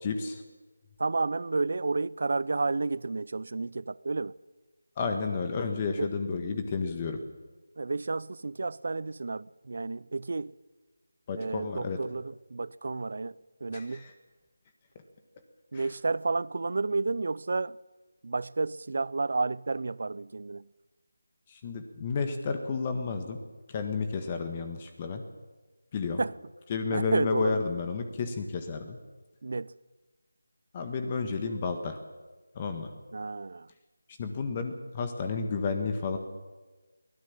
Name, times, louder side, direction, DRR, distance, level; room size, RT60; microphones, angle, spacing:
voice 1, 0.0-0.4 5.0-7.2 11.3-12.0 13.7-14.1 15.7-15.9 21.5-23.4 23.7-25.2 25.9-26.2 26.7-29.0 30.7-32.0 32.5-32.9 34.2-36.2, left 4 dB, 25° left, 1.6 m, -31 dB
voice 2, 1.0-4.3 6.0-6.1 7.8-10.5 11.3-14.1 15.7-17.8 18.2-20.7 26.2-26.3 26.9-27.6 29.4-29.7 33.1-33.7, right 3 dB, 55° right, 0.6 m, -31 dB
23.0 x 17.0 x 7.4 m
figure-of-eight pair, 165°, 0 cm